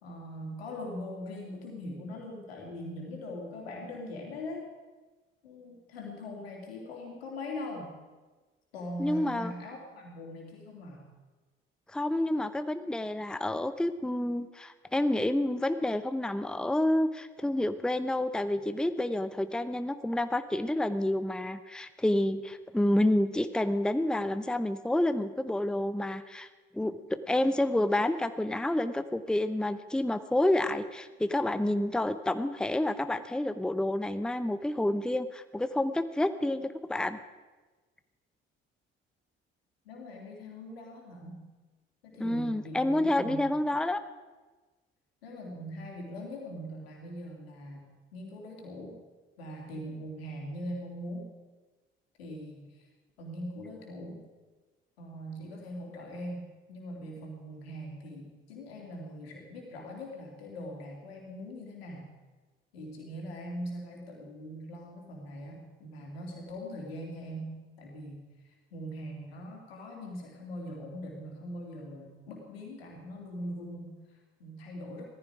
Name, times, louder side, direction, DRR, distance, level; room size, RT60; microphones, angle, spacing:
voice 1, 0.0-4.6 5.4-7.9 8.7-11.0 39.8-41.4 42.0-43.6 45.2-47.8 48.1-49.0 49.4-51.3 52.2-52.9 53.2-54.2 55.0-62.1 62.7-75.0, equal, 85° left, 0 dB, 3.1 m, -41 dB
voice 2, 9.0-9.5 11.9-26.5 26.7-37.2 42.2-44.0, left 1 dB, 5° left, 11 dB, 0.8 m, -29 dB
16.5 x 14.5 x 4.9 m, 1.3 s
hypercardioid pair, 50°, 30 cm